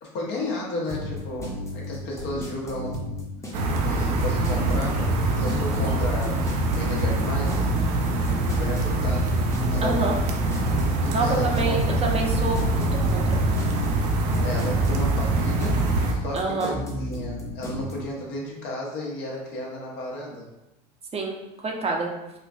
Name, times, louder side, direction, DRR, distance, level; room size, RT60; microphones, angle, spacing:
voice 1, 0.0-3.0 3.6-7.7 8.3-9.4 9.7-10.2 11.2-11.8 14.4-20.5, left 1 dB, 60° left, -2 dB, 1.0 m, -33 dB
sound 1, 0.9-17.9, left 1 dB, 15° left, 0.9 m, -33 dB
sound 2, 3.5-16.1, right 2 dB, 65° right, 0.6 m, -24 dB
voice 2, 9.8-10.2 11.1-13.4 16.3-16.8 21.1-22.1, right 3 dB, 30° right, 1 dB, 0.7 m, -27 dB
4.2 x 2.4 x 2.4 m, 0.96 s
hypercardioid pair, 75°, 21 cm